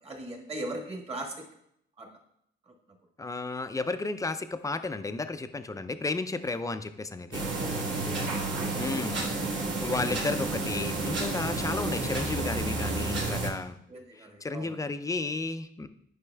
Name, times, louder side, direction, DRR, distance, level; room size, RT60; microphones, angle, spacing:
voice 1, 0.0-1.4 2.0-2.1 2.6-2.7 7.5-8.8 13.9-14.8, right 1 dB, 30° right, 1 dB, 1.6 m, -40 dB
voice 2, 3.2-7.5 8.7-9.3 9.8-13.8 14.2-15.9, left 3 dB, 15° left, 10 dB, 0.4 m, -33 dB
sound 1, 7.3-13.5, right 2 dB, 65° right, 1.9 m, -31 dB
9.8 x 5.2 x 2.3 m, 0.73 s
cardioid pair, 90°, 20 cm